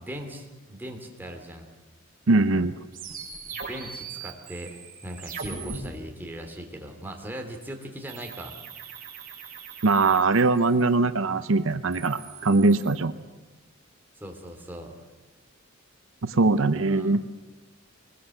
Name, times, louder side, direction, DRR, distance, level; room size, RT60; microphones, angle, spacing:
voice 1, 0.0-1.7 3.5-8.5 14.2-15.0 16.9-17.1, right 1 dB, 10° right, 2 dB, 3.0 m, -39 dB
voice 2, 2.3-2.7 9.8-13.1 16.2-17.2, right 3 dB, 75° right, 11 dB, 0.8 m, -21 dB
sound 1, 2.9-5.8 8.1-10.9 11.7-13.0, right 5 dB, 45° right, 5.3 m, -40 dB
22.5 x 20.0 x 7.9 m, 1.2 s
head